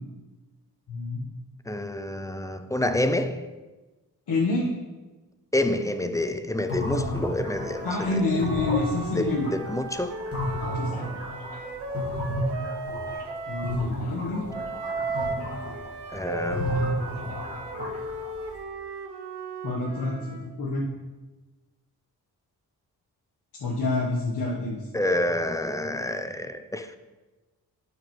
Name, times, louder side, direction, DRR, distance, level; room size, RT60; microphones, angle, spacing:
voice 1, 0.9-1.2 4.3-4.7 7.8-9.5 10.6-11.1 13.5-14.4 19.6-20.9 23.6-24.8, left 3 dB, 80° left, 1.2 m, -27 dB
voice 2, 1.7-3.5 5.5-8.2 9.2-10.2 16.1-16.9 24.9-27.0, left 1 dB, 10° left, 0.4 m, -28 dB
sound 1, 6.7-13.4 13.6-18.6, equal, 35° left, 2.3 m, -32 dB
Wind instrument woodwind instrument, 7.4-13.8 14.5-20.5, right 2 dB, 80° right, 0.9 m, -35 dB
11.5 x 5.0 x 3.1 m
wide cardioid pair, 100°, 39 cm